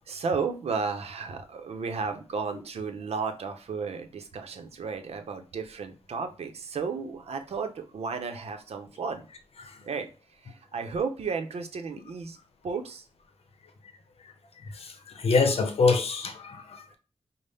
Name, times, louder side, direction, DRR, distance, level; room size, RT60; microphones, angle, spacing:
voice 1, 0.1-9.3 9.9-10.1 10.4-12.4 12.6-13.0, right 5 dB, 90° right, 0.6 m, -33 dB
voice 2, 15.2-16.9, left 4 dB, 75° left, 0.7 m, -24 dB
5.4 x 2.1 x 3.3 m
wide cardioid pair, 145°, 10 cm